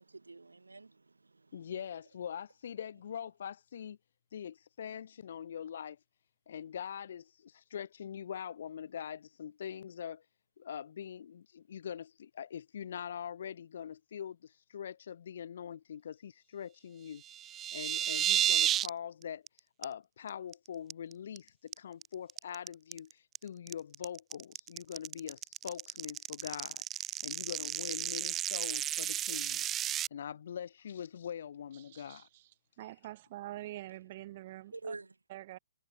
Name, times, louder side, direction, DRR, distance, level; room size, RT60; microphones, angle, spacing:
voice 1, 0.0-1.7 34.7-35.1, right 3 dB, 75° right, 2.8 m, -47 dB
voice 2, 1.5-4.0 4.3-6.0 6.5-10.2 10.6-17.2 17.7-19.4 19.8-32.3, left 8 dB, 55° left, 5.6 m, -43 dB
sound 1, 17.2-18.9 19.2-19.5 19.8-19.9 20.3-20.5 20.9-21.4 21.7-30.1, right 11 dB, 20° right, 1.4 m, -32 dB
voice 3, 31.8-32.5 32.8-35.0 35.3-35.6, right 15 dB, 40° right, 3.8 m, -46 dB
figure-of-eight pair, 125°, 0 cm